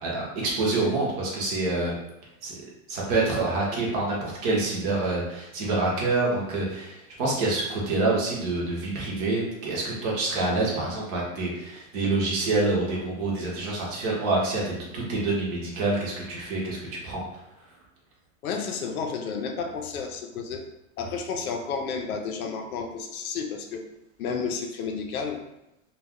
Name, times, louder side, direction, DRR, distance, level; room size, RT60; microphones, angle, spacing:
voice 1, 0.0-1.9 2.4-2.5 2.9-17.2, right 2 dB, 25° right, -4 dB, 0.6 m, -27 dB
voice 2, 18.4-20.7 21.0-23.9 24.2-25.4, left 5 dB, 90° left, 3 dB, 0.6 m, -31 dB
2.3 x 2.2 x 3.5 m, 0.89 s
supercardioid pair, 160°, 42 cm